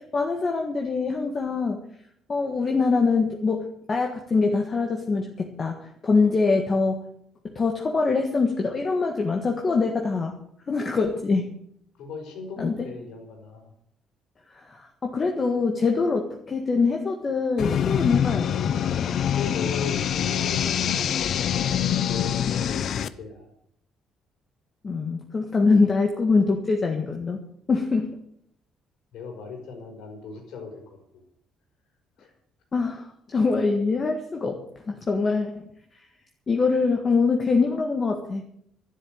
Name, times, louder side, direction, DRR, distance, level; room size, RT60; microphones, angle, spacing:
voice 1, 0.0-1.8 2.3-3.6 3.9-7.0 7.4-10.4 10.7-11.5 12.6-12.9 14.5-18.9 24.8-27.4 27.7-28.1 32.7-34.6 34.9-35.5 36.5-38.4, left 4 dB, 30° left, 3 dB, 1.7 m, -24 dB
voice 2, 12.0-13.7 19.3-21.8 22.1-22.8 23.2-23.5 29.1-31.0 32.2-32.3, left 5 dB, 75° left, 3 dB, 5.4 m, -37 dB
sound 1, 17.6-23.1, left 9 dB, 50° left, 0.7 m, -25 dB
12.0 x 10.5 x 9.3 m, 0.71 s
cardioid pair, 140°, 0 cm